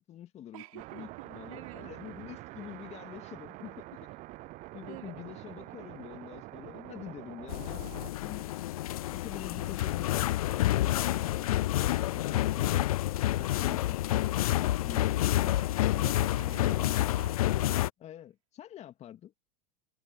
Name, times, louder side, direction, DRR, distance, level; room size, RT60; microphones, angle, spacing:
voice 1, 0.0-4.1 4.7-8.5 9.1-12.8 13.3-14.4 14.8-15.2 16.5-17.0 18.0-19.3, left 11 dB, 40° left, 2.3 m, -46 dB
voice 2, 0.5-1.9 4.9-5.2 15.4-15.7 15.9-17.9, right 17 dB, 75° right, 4.5 m, -49 dB
sound 1, 0.8-8.1, right 19 dB, 45° right, 0.5 m, -46 dB
sound 2, 7.5-17.9, left 14 dB, 85° left, 0.4 m, -28 dB
sound 3, 7.9-14.0, equal, ahead, 5.4 m, -61 dB
hypercardioid pair, 105°, 18 cm